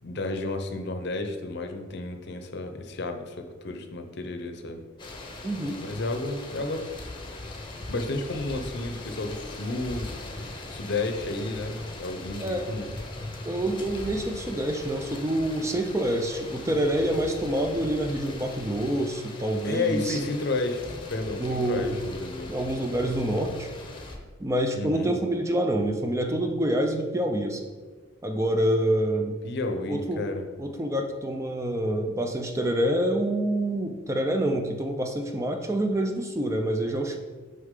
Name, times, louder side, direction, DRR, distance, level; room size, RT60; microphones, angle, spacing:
voice 1, 0.0-4.8 5.8-6.8 7.9-10.1 10.7-12.9 19.6-22.5 24.7-25.1 29.4-30.5, left 2 dB, 55° left, 5 dB, 0.7 m, -31 dB
sound 1, 5.0-24.2, left 2 dB, 25° left, 0.8 m, -40 dB
voice 2, 5.4-5.8 12.4-12.7 13.4-20.2 21.4-22.0 22.5-23.7 24.4-27.6 28.2-29.4 29.9-30.2 30.6-37.2, right 1 dB, 15° right, 4 dB, 0.4 m, -27 dB
6.4 x 5.6 x 3.7 m, 1.4 s
head